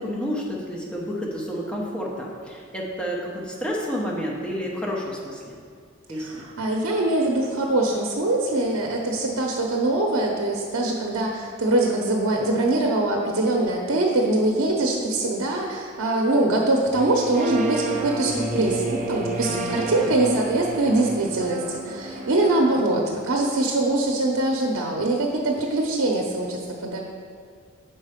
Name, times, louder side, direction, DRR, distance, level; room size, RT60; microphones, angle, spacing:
voice 1, 0.0-5.6 6.1-6.4 19.4-19.5 19.9-20.1, equal, 5° left, -3 dB, 0.9 m, -30 dB
voice 2, 6.1-27.0, right 2 dB, 90° right, 0 dB, 0.7 m, -23 dB
sound 1, 16.9-22.7, right 3 dB, 35° right, 0.6 m, -30 dB
6.4 x 4.3 x 4.9 m, 2.1 s
head